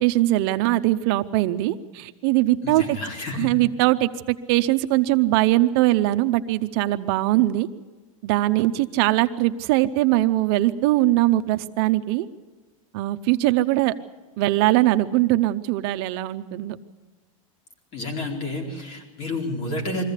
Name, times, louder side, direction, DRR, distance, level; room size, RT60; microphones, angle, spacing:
voice 1, 0.0-2.8 3.3-7.7 8.2-12.3 12.9-13.9 14.4-16.8, right 16 dB, 45° right, 10 dB, 0.6 m, -21 dB
voice 2, 2.6-3.5 17.9-20.0, left 2 dB, 40° left, 2 dB, 4.3 m, -30 dB
22.5 x 15.0 x 8.2 m, 1.4 s
supercardioid pair, 165°, 17 cm